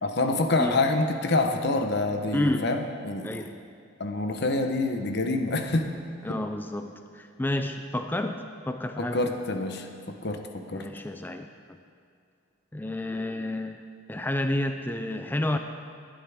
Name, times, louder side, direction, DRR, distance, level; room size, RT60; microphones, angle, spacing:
voice 1, 0.0-3.5 4.0-6.0 6.3-6.4 9.0-10.9, left 2 dB, 50° left, 5 dB, 0.9 m, -27 dB
voice 2, 2.3-2.7 3.2-3.6 6.2-9.4 10.7-11.8 12.7-13.8 14.1-15.6, left 1 dB, 10° left, 6 dB, 0.4 m, -30 dB
19.0 x 10.5 x 3.6 m, 2.4 s
head